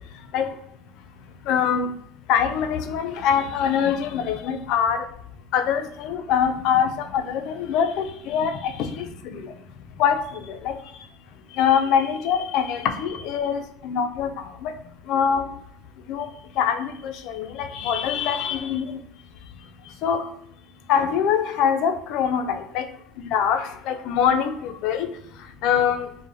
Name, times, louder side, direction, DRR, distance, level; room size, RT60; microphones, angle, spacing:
voice 1, 1.5-1.9 2.3-5.0 5.5-9.4 10.0-10.2 10.6-10.8 11.6-14.3 14.6-14.7 15.1-15.4 16.1-16.3 16.6-18.8 20.0-20.2 20.9-22.8 23.3-25.1 25.6-26.1, left 8 dB, 65° left, 6 dB, 0.3 m, -23 dB
2.5 x 2.0 x 3.0 m, 0.74 s
hypercardioid pair, 80°, 0 cm